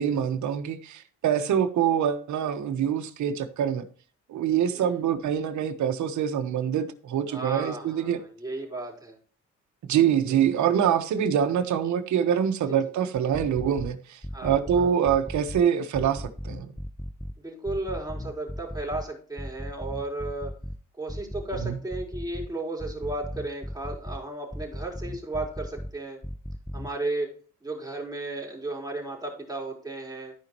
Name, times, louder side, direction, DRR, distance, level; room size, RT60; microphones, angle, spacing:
voice 1, 0.0-3.8 4.3-8.2 9.9-16.7 21.6-21.8, right 9 dB, 70° right, 1.2 m, -25 dB
voice 2, 7.3-9.2 10.3-10.4 12.7-12.8 14.3-14.9 17.4-20.5 21.0-26.2 26.7-30.3, right 2 dB, 15° right, 4.3 m, -34 dB
sound 1, 13.3-13.9 14.2-15.6 15.9-17.3 17.7-19.0 19.4-20.8 21.1-22.5 22.8-24.2 24.5-25.9 26.2-26.9, equal, 5° left, 0.4 m, -36 dB
14.5 x 5.2 x 3.0 m
cardioid pair, 90°, 30 cm